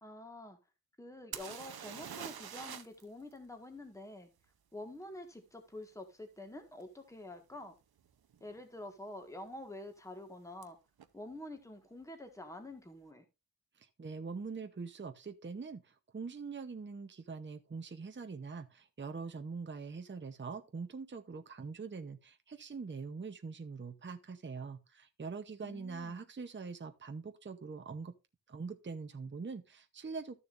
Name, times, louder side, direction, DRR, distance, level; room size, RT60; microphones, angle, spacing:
voice 1, 0.0-0.6 1.0-4.3 4.7-7.7 8.4-10.8 11.1-13.2 25.6-26.2, left 1 dB, 10° left, 1.6 m, -47 dB
sound 1, 1.3-3.0 3.3-3.4 6.8-6.9 7.6-7.7 8.0-8.6 10.6-10.7 11.0-11.1, right 8 dB, 75° right, 0.9 m, -45 dB
voice 2, 13.8-28.1 28.5-30.4, right 4 dB, 30° right, 0.8 m, -43 dB
13.5 x 6.9 x 2.5 m
wide cardioid pair, 130°, 37 cm